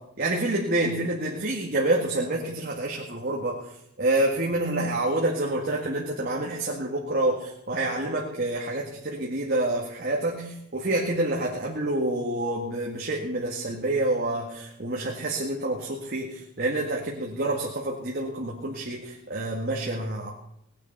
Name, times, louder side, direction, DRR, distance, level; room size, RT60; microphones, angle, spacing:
voice 1, 0.2-3.6 4.0-16.3 16.6-20.3, right 2 dB, 45° right, -2 dB, 1.8 m, -27 dB
18.5 x 9.0 x 5.5 m, 0.75 s
head